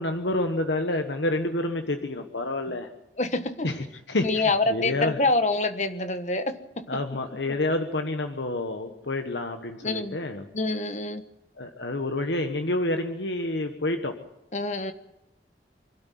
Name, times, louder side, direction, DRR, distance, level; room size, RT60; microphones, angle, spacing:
voice 1, 0.0-2.9 3.6-5.2 6.9-10.5 11.6-14.2, left 2 dB, 90° left, 6 dB, 1.4 m, -28 dB
voice 2, 3.2-3.7 4.2-7.0 9.8-10.2 10.5-11.2 14.5-14.9, left 2 dB, 40° left, 9 dB, 1.3 m, -26 dB
25.5 x 12.5 x 9.4 m, 0.86 s
head